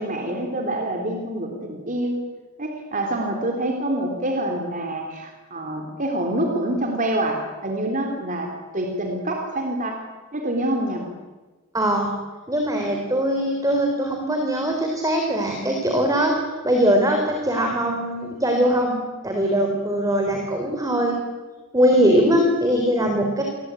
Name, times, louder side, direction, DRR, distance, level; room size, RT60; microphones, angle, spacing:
voice 1, 0.0-2.3 2.6-10.0 10.3-11.1 19.9-20.2, right 1 dB, 40° right, 2 dB, 3.6 m, -26 dB
voice 2, 11.7-12.1 12.5-16.3 16.6-19.0 19.2-21.2 21.7-23.4, equal, 15° right, 2 dB, 4.0 m, -21 dB
28.5 x 22.5 x 9.1 m, 1.2 s
head